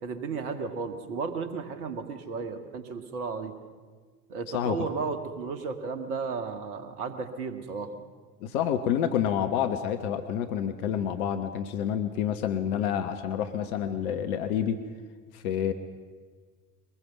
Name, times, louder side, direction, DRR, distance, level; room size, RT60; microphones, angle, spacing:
voice 1, 0.0-3.5 4.3-7.9, right 4 dB, 70° right, 9 dB, 1.9 m, -34 dB
voice 2, 8.4-14.8 15.3-15.7, left 9 dB, 65° left, 9 dB, 1.2 m, -28 dB
23.0 x 20.0 x 6.0 m, 1.5 s
figure-of-eight pair, 65°, 47 cm